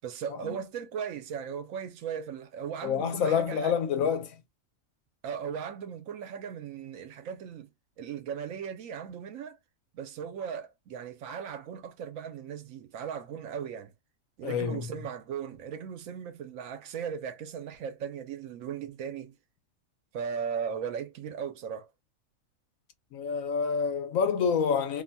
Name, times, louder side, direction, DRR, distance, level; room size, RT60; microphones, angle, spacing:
voice 1, 0.0-3.8 5.2-7.7 8.0-9.6 9.9-13.9 14.4-19.3 20.1-21.9, right 7 dB, 80° right, 1.0 m, -37 dB
voice 2, 2.8-4.3 14.4-14.9 23.1-25.0, left 6 dB, 80° left, 1.0 m, -28 dB
2.7 x 2.2 x 2.6 m
omnidirectional pair, 1.4 m